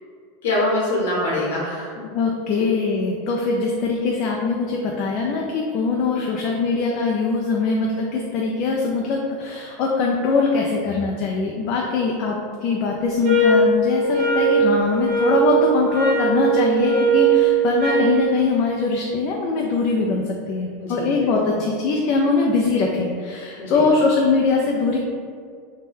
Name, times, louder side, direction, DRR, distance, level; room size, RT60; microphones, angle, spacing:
voice 1, 0.4-2.1 20.8-21.1 23.6-23.9, left 1 dB, 85° left, -5 dB, 0.9 m, -24 dB
voice 2, 2.1-25.0, left 4 dB, 45° left, -1 dB, 0.3 m, -22 dB
sound 1, 13.2-18.2, right 4 dB, 55° right, 0.7 m, -19 dB
2.7 x 2.1 x 3.3 m, 2.1 s
supercardioid pair, 135°, 0 cm